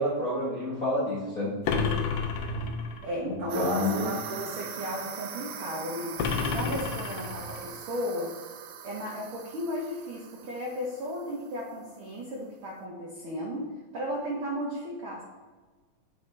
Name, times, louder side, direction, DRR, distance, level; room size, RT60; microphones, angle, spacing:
voice 1, 0.0-1.5 3.5-4.1, left 1 dB, 45° left, -9 dB, 1.1 m, -28 dB
sound 1, 1.6-3.1 6.2-7.7, left 4 dB, 85° left, 1.4 m, -30 dB
voice 2, 3.0-8.3 8.8-13.7 13.9-15.2, equal, 70° right, -3 dB, 1.2 m, -35 dB
sound 2, 3.5-11.7, right 8 dB, 90° right, 1.4 m, -41 dB
9.0 x 4.6 x 3.2 m, 1.3 s
omnidirectional pair, 3.6 m